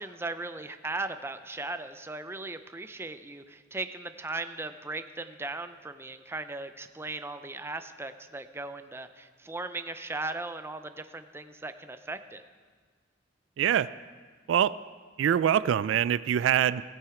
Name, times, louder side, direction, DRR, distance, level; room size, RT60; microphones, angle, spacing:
voice 1, 0.0-12.4, right 2 dB, 15° right, 10 dB, 0.5 m, -37 dB
voice 2, 13.6-13.9 14.5-14.7 15.2-16.8, right 9 dB, 85° right, 18 dB, 0.3 m, -24 dB
16.0 x 8.9 x 4.9 m, 1.5 s
head